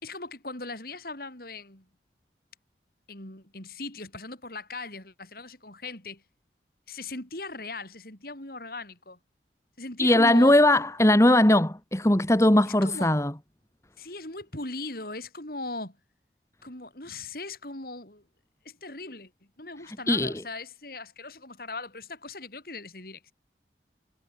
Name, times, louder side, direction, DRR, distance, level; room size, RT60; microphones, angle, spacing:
voice 1, 0.0-1.9 3.1-6.2 6.9-9.2 9.8-10.6 12.7-13.1 14.0-16.0 16.6-18.2 18.6-19.3 19.6-23.3, left 2 dB, 55° left, 6.0 m, -39 dB
voice 2, 10.0-13.3 20.1-20.3, left 1 dB, 15° left, 1.6 m, -19 dB
head